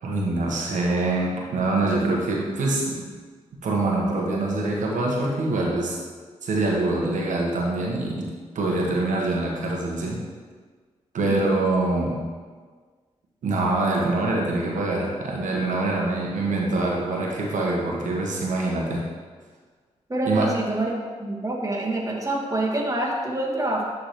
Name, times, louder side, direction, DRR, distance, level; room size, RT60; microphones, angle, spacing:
voice 1, 0.0-3.1 3.5-6.0 6.4-10.2 11.1-12.2 13.4-19.0 20.2-20.5, right 2 dB, 75° right, -2 dB, 1.3 m, -24 dB
voice 2, 20.1-23.8, right 1 dB, 25° right, -2 dB, 1.7 m, -26 dB
10.5 x 3.8 x 3.1 m, 1.5 s
supercardioid pair, 45°, 13 cm